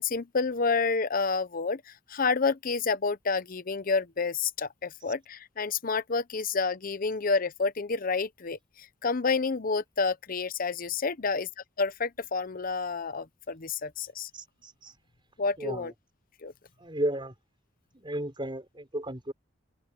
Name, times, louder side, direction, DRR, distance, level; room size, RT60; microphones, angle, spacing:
voice 1, 0.0-11.5 11.8-14.3 15.4-15.9 16.4-16.5, left 4 dB, 45° left, 0.8 m, -29 dB
voice 2, 14.3-14.9 15.6-15.9 16.8-17.3 17.9-19.3, right 1 dB, 25° right, 5.2 m, -34 dB
open air
head